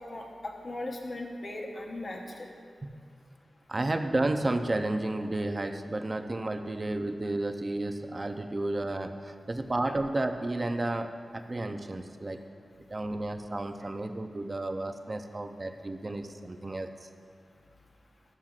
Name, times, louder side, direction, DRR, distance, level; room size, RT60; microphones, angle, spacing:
voice 1, 0.1-2.2, left 2 dB, 40° left, 0 dB, 0.9 m, -38 dB
voice 2, 3.7-12.5 12.9-17.1, right 2 dB, 30° right, 7 dB, 0.5 m, -32 dB
13.5 x 7.3 x 2.4 m, 2.1 s
wide cardioid pair, 135°, 0 cm